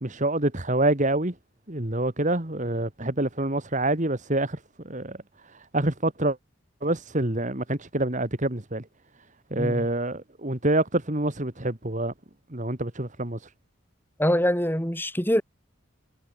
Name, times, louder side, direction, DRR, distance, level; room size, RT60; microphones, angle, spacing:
voice 1, 0.0-1.3 1.7-4.6 4.9-5.2 5.7-6.4 6.8-8.8 9.5-12.1 12.5-13.4, right 1 dB, 35° right, 2.1 m, -26 dB
voice 2, 9.6-9.9 14.2-15.4, equal, 10° left, 5.4 m, -24 dB
head